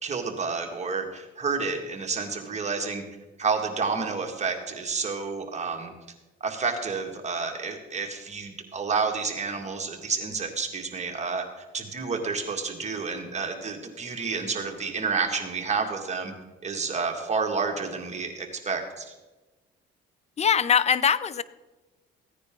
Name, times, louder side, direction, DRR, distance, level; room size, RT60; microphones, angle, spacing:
voice 1, 0.0-3.0 3.4-5.9 6.4-11.5 11.7-16.3 16.6-19.1, right 4 dB, 35° right, 3 dB, 2.1 m, -30 dB
voice 2, 20.4-21.4, left 7 dB, 35° left, 17 dB, 0.6 m, -22 dB
15.5 x 9.7 x 3.9 m, 1.1 s
cardioid pair, 90°, 20 cm